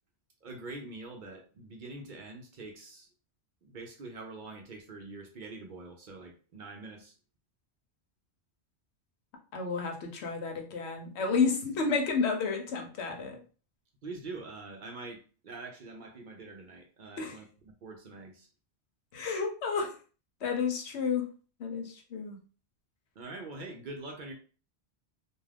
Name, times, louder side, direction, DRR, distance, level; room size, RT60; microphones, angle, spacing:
voice 1, 0.4-3.1 3.6-7.1 14.0-17.4 17.8-18.5 23.2-24.3, right 3 dB, 60° right, 2 dB, 0.6 m, -44 dB
voice 2, 9.5-13.4 17.2-17.4 19.1-19.9 20.4-21.3 21.6-22.4, left 5 dB, 80° left, 3 dB, 1.0 m, -31 dB
2.3 x 2.3 x 3.3 m, 0.37 s
omnidirectional pair, 1.1 m